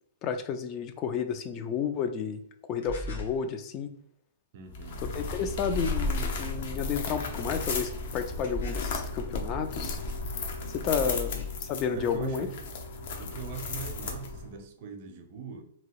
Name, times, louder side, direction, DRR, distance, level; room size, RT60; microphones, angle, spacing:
voice 1, 0.2-2.4 2.7-3.9 5.1-10.0 10.7-11.3 11.7-12.5, left 7 dB, 30° left, 8 dB, 0.3 m, -31 dB
sound 1, 2.8-3.4 5.6-6.2 8.4-9.1 10.9-11.6, left 3 dB, 75° left, 1.0 m, -37 dB
voice 2, 4.5-5.0 11.0-11.2 11.9-12.7 13.2-15.6, right 5 dB, 45° right, 6 dB, 0.5 m, -41 dB
sound 2, 4.7-14.6, left 3 dB, 60° left, 0.7 m, -34 dB
2.8 x 2.7 x 2.9 m, 0.69 s
hypercardioid pair, 145°, 0 cm